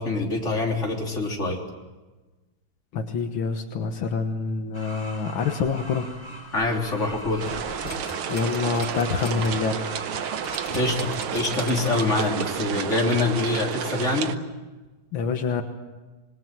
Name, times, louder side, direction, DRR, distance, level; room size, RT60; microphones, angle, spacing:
voice 1, 0.0-1.6 6.5-7.4 10.7-14.3, left 2 dB, 35° left, 0 dB, 3.7 m, -25 dB
voice 2, 2.9-6.1 8.3-9.8 15.1-15.6, left 5 dB, 80° left, 5 dB, 2.1 m, -26 dB
sound 1, 4.7-10.7, equal, 10° left, 3.4 m, -41 dB
sound 2, 7.4-9.5 9.9-10.0 10.4-12.1 12.5-12.6, left 2 dB, 60° left, 4.8 m, -40 dB
sound 3, 7.4-14.4, right 8 dB, 85° right, 1.9 m, -31 dB
26.5 x 21.0 x 7.6 m, 1.2 s
omnidirectional pair, 2.2 m